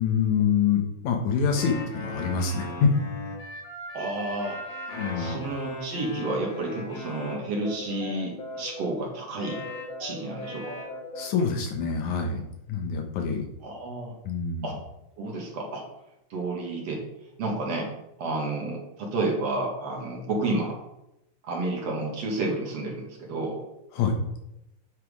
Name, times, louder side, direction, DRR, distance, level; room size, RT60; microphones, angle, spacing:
voice 1, 0.0-2.9 5.0-5.4 11.2-12.4 12.7-13.4 14.2-14.7 23.9-24.2, left 6 dB, 70° left, 4 dB, 2.6 m, -25 dB
sound 1, 1.6-8.9 9.4-11.4, left 1 dB, 55° left, 2.7 m, -38 dB
voice 2, 3.9-4.6 4.9-9.6 10.0-10.8 13.6-14.1 14.6-14.8 15.2-15.9 16.3-17.0 17.4-17.9 18.2-20.8 21.4-23.6, right 2 dB, 55° right, -1 dB, 2.5 m, -31 dB
9.3 x 6.0 x 4.8 m, 0.87 s
omnidirectional pair, 3.6 m